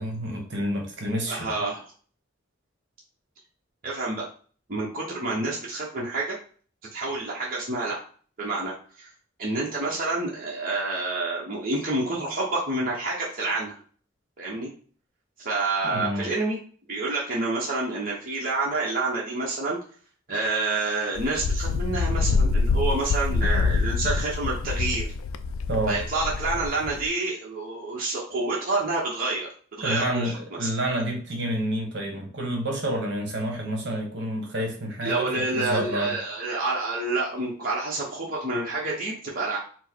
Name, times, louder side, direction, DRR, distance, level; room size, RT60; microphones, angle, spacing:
voice 1, 0.0-1.6 15.8-16.3 25.7-26.0 29.8-36.2, right 1 dB, 60° right, 2 dB, 1.1 m, -29 dB
voice 2, 1.3-1.9 3.8-4.2 4.7-6.4 6.9-8.0 8.4-9.1 9.4-13.7 14.4-14.7 15.4-16.6 16.9-19.8 20.3-25.1 25.9-30.3 30.6-30.7 35.0-39.6, right 2 dB, 45° right, -4 dB, 0.9 m, -28 dB
Wind, 21.2-27.1, left 4 dB, 90° left, 0.3 m, -25 dB
4.5 x 2.0 x 4.4 m, 0.44 s
head